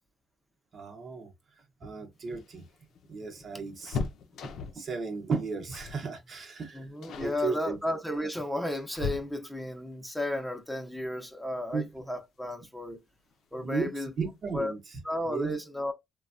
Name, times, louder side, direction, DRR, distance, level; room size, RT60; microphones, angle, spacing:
voice 1, 0.7-1.3 1.8-2.6 3.1-4.0 4.4-6.8 7.2-7.8 11.7-11.9 13.6-14.8 15.3-15.6, right 4 dB, 55° right, 0.9 m, -34 dB
sound 1, 2.2-4.9 5.7-6.1 6.3-6.6 7.0-7.4 8.2-9.7 11.4-11.5 11.9-12.0 13.2-13.6 13.9-14.0 14.3-14.5, left 4 dB, 80° left, 0.5 m, -38 dB
voice 2, 6.7-13.0 13.5-14.1 14.5-14.7 15.0-15.9, left 1 dB, 5° left, 0.7 m, -33 dB
3.2 x 2.2 x 2.5 m
cardioid pair, 90°, 0 cm